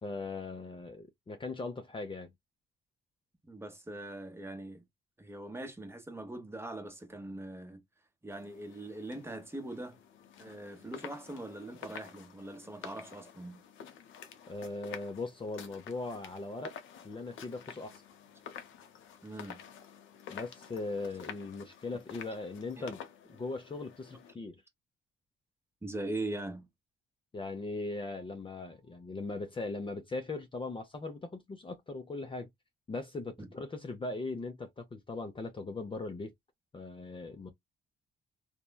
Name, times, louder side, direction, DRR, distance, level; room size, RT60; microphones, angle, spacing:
voice 1, 0.0-2.3 14.5-16.8 17.0-18.0 20.3-23.0 23.3-24.6 27.3-32.5 32.9-36.3 36.7-37.5, left 3 dB, 25° left, 0.6 m, -39 dB
voice 2, 3.5-4.8 5.2-7.8 8.2-10.0 10.4-13.6 19.2-19.6 22.8-22.9 25.8-26.7 33.4-33.5, right 2 dB, 10° right, 0.8 m, -41 dB
sound 1, 8.3-24.3, left 8 dB, 80° left, 0.7 m, -50 dB
3.1 x 2.2 x 2.2 m
cardioid pair, 90°, 20 cm